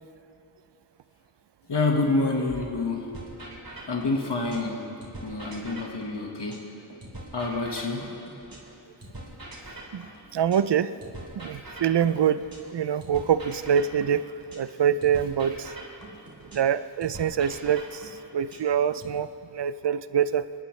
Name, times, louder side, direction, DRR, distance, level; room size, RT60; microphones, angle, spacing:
voice 1, 1.7-3.1 3.9-4.8 5.2-6.7 7.3-8.2, left 3 dB, 80° left, 1 dB, 1.6 m, -27 dB
sound 1, 3.1-4.7 5.0-8.7 9.0-12.7 13.0-16.7 17.0-19.1, right 1 dB, 55° right, 3.1 m, -43 dB
voice 2, 10.3-10.9 11.4-12.5 12.7-14.2 14.6-15.7 16.5-18.0 18.3-20.4, right 8 dB, 85° right, 14 dB, 0.5 m, -25 dB
29.0 x 11.0 x 3.2 m, 2.9 s
wide cardioid pair, 40°, 41 cm